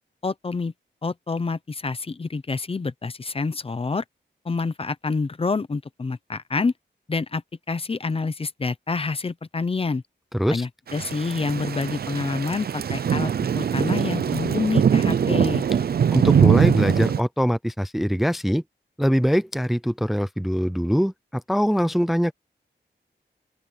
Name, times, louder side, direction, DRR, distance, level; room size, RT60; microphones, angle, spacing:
voice 1, 0.2-0.7 1.0-4.0 4.4-6.7 7.1-7.4 7.7-10.0 10.5-15.6, left 4 dB, 30° left, 0.8 m, -27 dB
voice 2, 10.3-10.7 16.1-18.6 19.0-22.3, equal, ahead, 0.6 m, -22 dB
Thunder / Rain, 10.9-17.2, right 7 dB, 55° right, 0.5 m, -22 dB
open air
wide cardioid pair, 160°, 19 cm